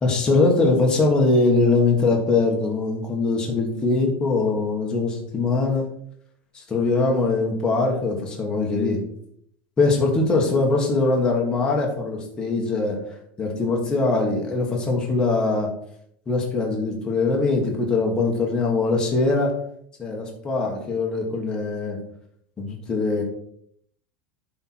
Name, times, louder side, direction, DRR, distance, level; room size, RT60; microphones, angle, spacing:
voice 1, 0.0-5.9 6.5-9.0 9.8-13.0 13.4-15.7 16.3-19.5 20.0-22.0 22.6-23.2, left 3 dB, 15° left, -1 dB, 1.5 m, -22 dB
10.5 x 4.4 x 4.4 m, 0.67 s
supercardioid pair, 180°, 6 cm